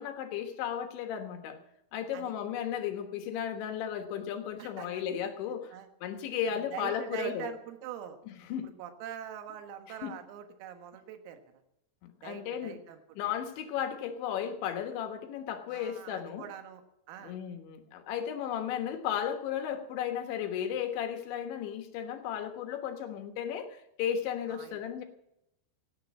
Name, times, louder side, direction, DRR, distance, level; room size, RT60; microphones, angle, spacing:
voice 1, 0.0-1.6 1.9-5.7 6.0-7.5 8.3-8.7 10.0-10.2 12.0-12.8 13.2-16.4 17.2-25.0, left 9 dB, 70° left, 6 dB, 3.5 m, -35 dB
voice 2, 4.6-5.0 5.7-5.9 6.4-8.2 8.6-11.4 12.2-13.0 15.7-16.8 17.1-17.4 24.5-24.8, right 10 dB, 85° right, 7 dB, 4.2 m, -43 dB
17.0 x 10.5 x 7.3 m, 0.82 s
omnidirectional pair, 5.9 m